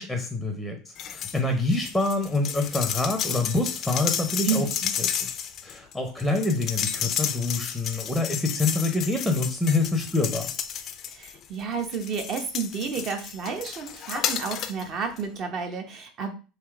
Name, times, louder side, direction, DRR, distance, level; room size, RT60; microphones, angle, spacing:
voice 1, 0.0-4.7 5.0-5.4 5.6-10.5, left 2 dB, ahead, 4 dB, 0.7 m, -26 dB
sound 1, 1.0-1.4 1.7-11.5 11.9-14.8 15.2-15.3, left 9 dB, 40° left, 0.5 m, -32 dB
voice 2, 4.4-4.9 11.1-16.3, right 5 dB, 40° right, 5 dB, 1.0 m, -31 dB
3.5 x 2.8 x 4.7 m, 0.35 s
supercardioid pair, 130°, 0 cm